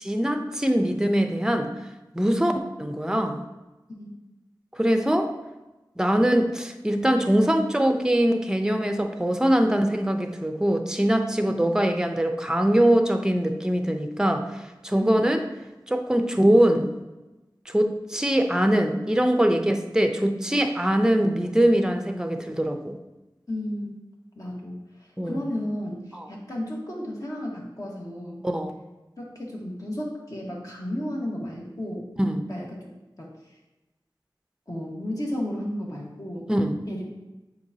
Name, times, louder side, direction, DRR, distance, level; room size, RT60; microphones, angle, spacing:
voice 1, 0.0-1.7 2.1-2.5 2.8-3.4 4.7-5.3 6.0-15.4 15.9-16.9 17.7-23.0 25.2-25.4 26.1-26.2 28.4-28.8 32.2-32.4 36.5-36.8, right 1 dB, 10° right, 5 dB, 0.6 m, -22 dB
voice 2, 2.3-2.6 4.0-4.1 11.5-11.6 15.0-15.3 23.5-23.9 24.3-28.4 29.2-32.0 32.5-32.8 33.2-33.3 34.7-36.5 36.9-37.0, left 1 dB, 50° left, -3 dB, 1.6 m, -33 dB
7.7 x 4.7 x 2.8 m, 1.1 s
wide cardioid pair, 50°, 8 cm